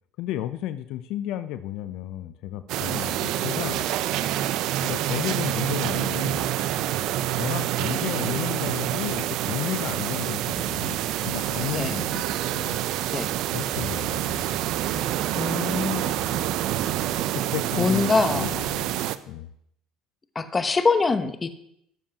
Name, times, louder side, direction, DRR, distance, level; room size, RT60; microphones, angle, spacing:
voice 1, 0.2-3.8 4.8-6.5 7.4-12.3 12.5-12.8 13.5-14.4 14.9-15.1 17.3-18.9 19.3-19.5, left 12 dB, 70° left, 11 dB, 0.5 m, -33 dB
sound 1, 2.7-19.2, right 12 dB, 65° right, 0.5 m, -27 dB
sound 2, 10.5-18.8, right 1 dB, 30° right, 1.1 m, -47 dB
voice 2, 15.3-16.2 17.8-18.5 20.3-21.5, left 4 dB, 25° left, 10 dB, 0.9 m, -24 dB
16.5 x 7.3 x 2.9 m, 0.74 s
supercardioid pair, 90°, 0 cm